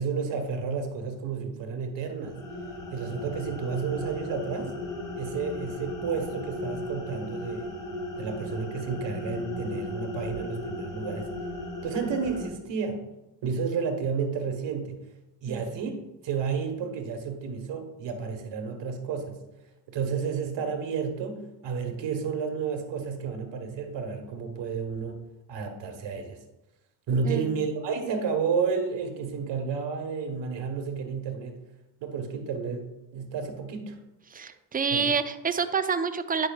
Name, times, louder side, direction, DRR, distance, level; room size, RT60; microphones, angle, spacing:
voice 1, 0.0-2.4 2.9-4.7 5.2-7.7 8.2-11.3 11.8-13.0 13.4-15.0 15.4-15.9 16.2-19.4 19.9-25.2 25.5-26.4 27.1-31.6 32.0-32.9 33.1-33.9 34.9-35.1, right 5 dB, 60° right, 5 dB, 1.5 m, -31 dB
sound 1, 2.1-12.5, left 2 dB, 40° left, 2.2 m, -36 dB
voice 2, 27.3-27.6 34.3-36.5, right 5 dB, 20° right, 11 dB, 0.3 m, -28 dB
8.9 x 6.1 x 2.4 m, 0.94 s
supercardioid pair, 75°, 50 cm